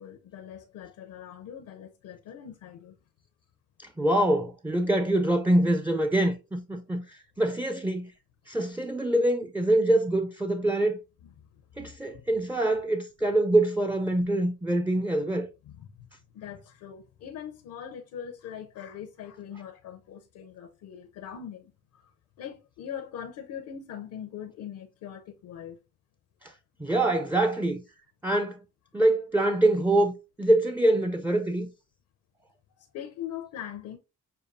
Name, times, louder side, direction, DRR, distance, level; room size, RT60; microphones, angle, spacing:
voice 1, 0.0-3.0 11.5-12.2 14.2-14.3 15.6-16.0 16.3-22.1 22.4-25.8 32.8-34.0, left 9 dB, 80° left, 0.7 m, -42 dB
voice 2, 3.8-8.1 8.5-11.0 11.8-15.5 26.4-26.5 26.8-27.8 28.2-28.6 28.9-31.7, right 1 dB, 5° right, 0.4 m, -25 dB
6.6 x 2.3 x 2.6 m
cardioid pair, 90°, 30 cm